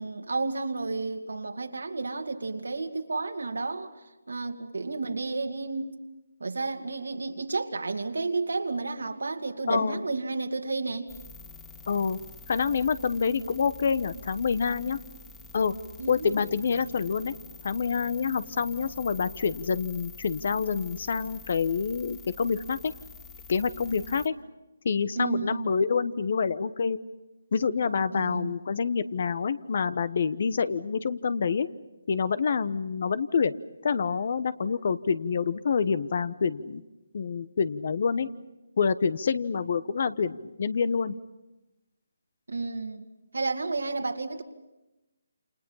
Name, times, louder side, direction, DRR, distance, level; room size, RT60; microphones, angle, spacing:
voice 1, 0.0-3.9 4.3-6.0 6.4-11.1 16.0-16.3 25.2-25.7 28.1-28.5 42.5-43.0 43.3-44.4, right 3 dB, 80° right, 2.4 m, -31 dB
voice 2, 9.7-10.0 11.9-12.2 12.5-15.0 15.5-15.7 16.1-17.3 17.6-22.9 23.5-24.3 24.8-27.0 27.5-31.7 32.1-33.5 33.8-36.8 37.1-38.3 38.8-41.1, left 5 dB, 50° left, 1.1 m, -27 dB
sound 1, 11.1-24.3, left 4 dB, 10° left, 2.0 m, -47 dB
28.5 x 28.0 x 5.7 m
figure-of-eight pair, 155°, 0 cm